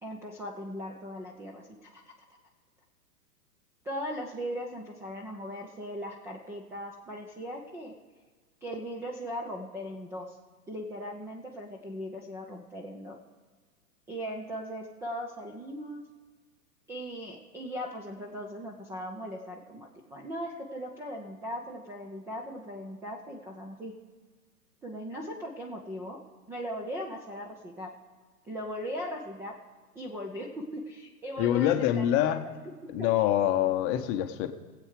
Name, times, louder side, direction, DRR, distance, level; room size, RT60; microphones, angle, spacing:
voice 1, 0.0-2.1 3.8-7.9 8.6-10.4 10.7-13.2 14.1-16.0 16.9-23.9 24.8-26.2 26.5-27.9 28.4-29.5 29.9-32.5 33.0-33.1, equal, 5° right, -1 dB, 0.4 m, -39 dB
voice 2, 31.4-32.4 32.9-34.5, left 11 dB, 30° left, 8 dB, 0.8 m, -25 dB
18.0 x 7.9 x 4.8 m, 1.5 s
hypercardioid pair, 110°, 47 cm